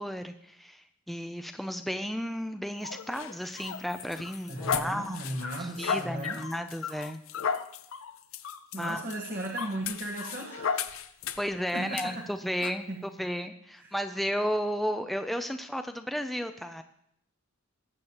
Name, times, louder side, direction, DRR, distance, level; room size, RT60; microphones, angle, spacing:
voice 1, 0.0-5.2 5.6-7.2 8.7-9.0 11.4-12.9 13.2-16.8, equal, ahead, 7 dB, 0.4 m, -33 dB
sound 1, 2.8-11.5 11.9-12.1 12.6-12.8, left 6 dB, 60° left, 0.5 m, -35 dB
voice 2, 4.5-6.4 8.7-10.9 11.7-12.3 12.9-13.0 13.8-13.9, right 1 dB, 45° right, -1 dB, 1.3 m, -36 dB
19.0 x 8.1 x 2.9 m, 0.71 s
head